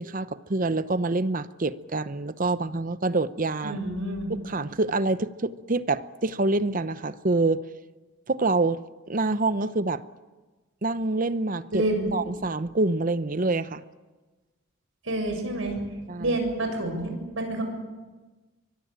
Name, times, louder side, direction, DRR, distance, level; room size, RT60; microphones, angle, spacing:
voice 1, 0.0-3.8 4.3-7.6 8.3-8.8 9.1-10.0 10.8-11.8 12.1-13.8 16.1-16.3, right 2 dB, 40° right, 0.8 m, -26 dB
voice 2, 3.6-4.3 11.7-12.2 15.0-15.8 16.2-17.6, right 1 dB, 70° right, 7.2 m, -28 dB
24.0 x 22.0 x 8.9 m
head